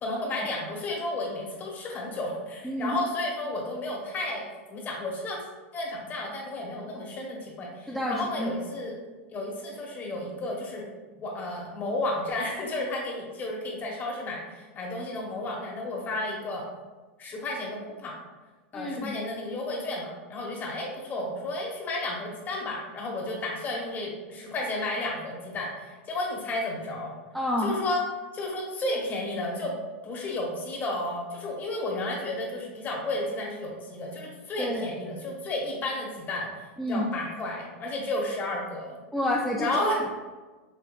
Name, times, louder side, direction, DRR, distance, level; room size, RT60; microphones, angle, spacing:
voice 1, 0.0-5.4 5.7-8.9 9.3-10.8 11.2-16.6 17.2-18.1 18.7-27.1 27.6-28.0 28.3-29.7 30.0-39.0 39.6-40.0, left 2 dB, 25° left, -2 dB, 1.1 m, -32 dB
voice 2, 2.6-3.0 7.9-8.5 18.7-19.2 27.3-27.8 34.6-34.9 36.8-37.1 39.1-39.7, left 1 dB, ahead, -3 dB, 0.3 m, -29 dB
5.6 x 2.7 x 2.4 m, 1.3 s
supercardioid pair, 130°, 7 cm